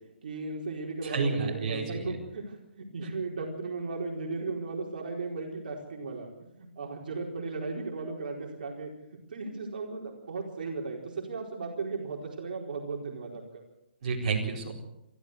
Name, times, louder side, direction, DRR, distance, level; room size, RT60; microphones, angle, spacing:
voice 1, 0.2-6.3 6.6-8.9 9.3-13.6, right 3 dB, 50° right, 0 dB, 4.4 m, -36 dB
voice 2, 1.0-2.1 14.0-14.7, right 4 dB, 35° right, -4 dB, 4.5 m, -30 dB
24.0 x 14.0 x 8.1 m, 0.86 s
hypercardioid pair, 175°, 6 cm